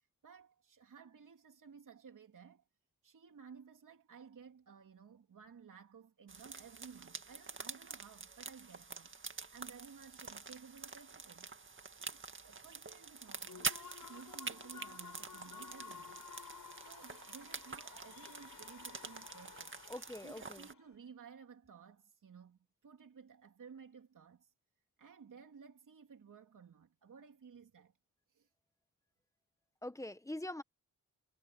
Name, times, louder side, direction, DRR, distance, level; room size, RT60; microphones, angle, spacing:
voice 1, 0.0-2.6 3.0-11.5 11.9-16.2 16.7-19.8 20.2-24.5 25.0-27.9 28.3-28.5, right 6 dB, 70° right, 3.3 m, -56 dB
sound 1, 6.3-20.7, right 4 dB, 35° right, 2.0 m, -46 dB
Human voice / Cheering / Applause, 13.2-20.9, left 7 dB, 80° left, 4.7 m, -54 dB
voice 2, 19.9-20.7 29.8-30.6, left 1 dB, 10° left, 1.4 m, -44 dB
wide cardioid pair, 95°, 33 cm